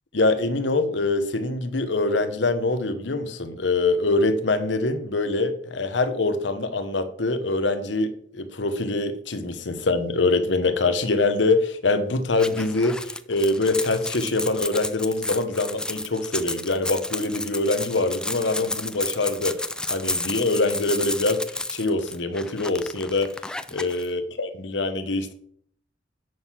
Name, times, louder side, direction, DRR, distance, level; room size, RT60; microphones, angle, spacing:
voice 1, 0.1-23.3 23.7-25.3, left 2 dB, 75° left, 1.0 m, -24 dB
sound 1, 12.4-24.1, left 2 dB, 5° left, 0.4 m, -32 dB
7.8 x 6.4 x 5.7 m
head